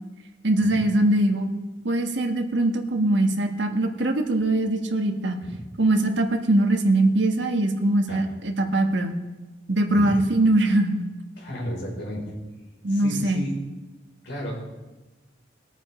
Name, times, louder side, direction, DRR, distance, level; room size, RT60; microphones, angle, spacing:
voice 1, 0.4-1.5 1.8-5.4 5.8-9.2 9.7-11.0 12.8-13.4, right 1 dB, 65° right, 4 dB, 1.5 m, -22 dB
voice 2, 11.4-12.3 12.9-13.5 14.2-14.6, equal, 65° left, -2 dB, 5.0 m, -33 dB
21.5 x 8.9 x 4.4 m, 1.1 s
head